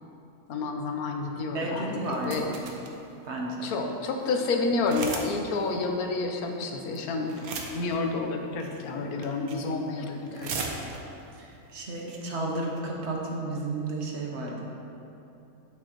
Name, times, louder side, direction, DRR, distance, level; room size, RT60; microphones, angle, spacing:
voice 1, 0.5-2.5 3.6-10.5, left 3 dB, 85° left, 3 dB, 1.2 m, -30 dB
voice 2, 1.5-2.5 3.2-3.6 11.3-14.6, right 2 dB, 55° right, -1 dB, 1.1 m, -32 dB
sound 1, 2.0-2.9 3.6-3.7 3.9-4.0 4.2-4.4 4.8-5.3 5.6-5.7 6.6-7.0 7.2-7.9 8.6-8.9 9.2-9.7 10.0-11.2 11.7-11.8 12.0-12.2 12.6-12.8, right 4 dB, 80° right, 1.2 m, -36 dB
8.6 x 7.8 x 3.0 m, 2.9 s
omnidirectional pair, 1.5 m